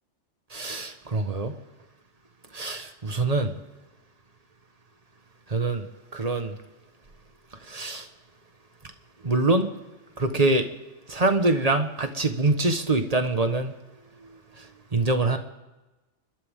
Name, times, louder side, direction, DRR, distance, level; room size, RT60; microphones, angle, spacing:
voice 1, 0.5-1.6 2.5-3.5 5.5-6.5 7.6-8.1 9.2-9.7 10.2-10.6 11.1-13.7 14.6-15.4, right 2 dB, 35° right, 7 dB, 1.5 m, -24 dB
29.5 x 12.5 x 3.7 m, 1.1 s
omnidirectional pair, 1.2 m